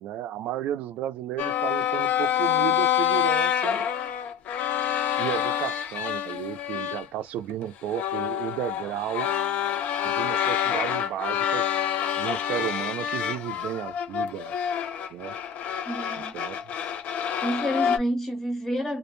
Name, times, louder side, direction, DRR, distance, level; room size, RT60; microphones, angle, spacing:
voice 1, 0.0-3.8 5.2-9.3 10.0-11.7 12.2-14.6 15.1-15.4 16.3-16.7, right 11 dB, 70° right, 0.3 m, -33 dB
sound 1, 1.4-7.1 7.5-7.6 7.9-18.0, left 10 dB, 55° left, 0.3 m, -27 dB
voice 2, 15.8-16.3 17.4-19.0, equal, 15° left, 0.6 m, -29 dB
2.4 x 2.1 x 3.0 m
cardioid pair, 170°, 3 cm